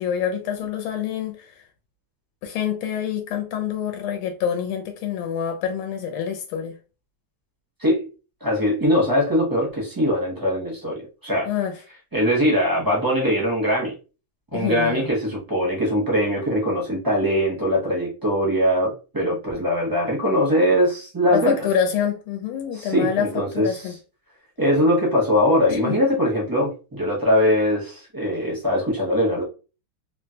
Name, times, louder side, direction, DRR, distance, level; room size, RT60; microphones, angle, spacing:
voice 1, 0.0-1.6 2.4-6.8 11.5-11.8 14.5-15.1 21.3-23.9 25.7-26.0, left 8 dB, 85° left, 1.5 m, -26 dB
voice 2, 8.4-11.5 12.1-13.9 14.5-21.6 22.7-23.8 24.6-29.4, equal, 30° right, 0.4 m, -21 dB
3.7 x 2.1 x 2.7 m
omnidirectional pair, 2.3 m